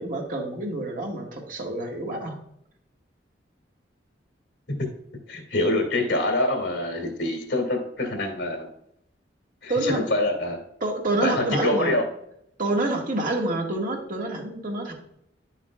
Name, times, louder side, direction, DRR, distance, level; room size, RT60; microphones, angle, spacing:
voice 1, 0.0-2.4 9.7-10.0 10.8-12.0 12.6-14.9, right 2 dB, 50° right, 0 dB, 1.8 m, -27 dB
voice 2, 5.3-8.7 9.6-10.6 11.2-12.0, left 2 dB, 75° left, 3 dB, 2.3 m, -25 dB
10.5 x 7.3 x 2.4 m, 0.73 s
head